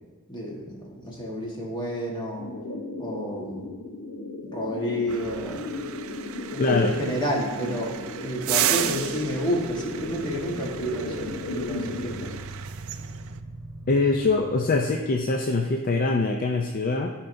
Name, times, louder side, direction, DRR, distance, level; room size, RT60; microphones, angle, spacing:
voice 1, 0.3-2.4 3.0-3.7 4.5-5.6 6.5-12.3, equal, 20° left, -3 dB, 1.4 m, -30 dB
sound 1, 2.4-12.4, left 2 dB, 80° left, 0.8 m, -35 dB
sound 2, 5.1-13.4, right 11 dB, 65° right, 0.4 m, -33 dB
voice 2, 6.6-6.9 13.9-17.1, left 3 dB, 40° left, 3 dB, 0.4 m, -23 dB
sound 3, 9.4-15.0, right 2 dB, 25° right, 1.5 m, -41 dB
13.0 x 4.4 x 2.6 m, 1.4 s
head